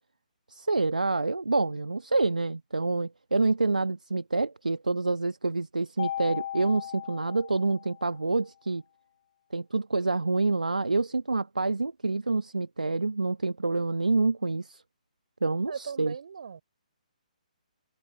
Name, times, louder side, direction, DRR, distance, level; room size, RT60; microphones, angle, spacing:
voice 1, 0.5-8.8 9.5-14.8 15.4-16.1, right 3 dB, 75° right, 1.2 m, -27 dB
Mallet percussion, 6.0-8.2, left 11 dB, 40° left, 1.6 m, -37 dB
voice 2, 15.7-16.6, right 6 dB, 55° right, 5.7 m, -38 dB
open air
figure-of-eight pair, 135°, 4 cm